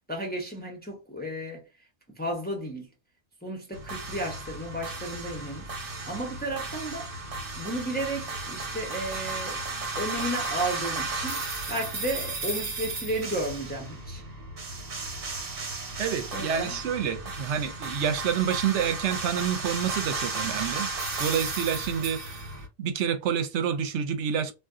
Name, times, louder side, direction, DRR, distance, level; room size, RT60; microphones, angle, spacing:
voice 1, 0.1-1.6 2.1-2.9 3.4-5.7 6.1-7.1 7.6-9.6 9.9-11.4 11.7-14.2 16.3-16.8, right 1 dB, 10° left, 0.6 m, -33 dB
sound 1, 3.7-22.7, right 3 dB, 55° right, 1.0 m, -34 dB
voice 2, 16.0-20.9 21.2-22.4 22.8-24.5, right 8 dB, 80° right, 0.9 m, -28 dB
2.6 x 2.2 x 3.5 m
omnidirectional pair, 1.2 m